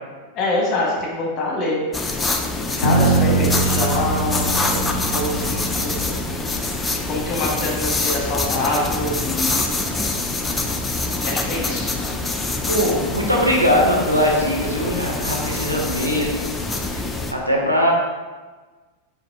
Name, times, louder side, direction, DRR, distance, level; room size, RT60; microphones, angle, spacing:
voice 1, 0.3-1.8 2.5-6.1 7.1-9.9 11.2-11.9, left 2 dB, 35° left, -3 dB, 1.3 m, -25 dB
sound 1, 1.9-17.3, left 2 dB, 15° left, 0.4 m, -25 dB
Bass guitar, 2.8-6.8, right 2 dB, 85° left, 0.4 m, -23 dB
voice 2, 12.7-16.3 16.9-17.0 17.3-17.9, equal, 85° right, -3 dB, 0.7 m, -20 dB
4.0 x 3.0 x 3.5 m, 1.4 s
figure-of-eight pair, 90°, 0 cm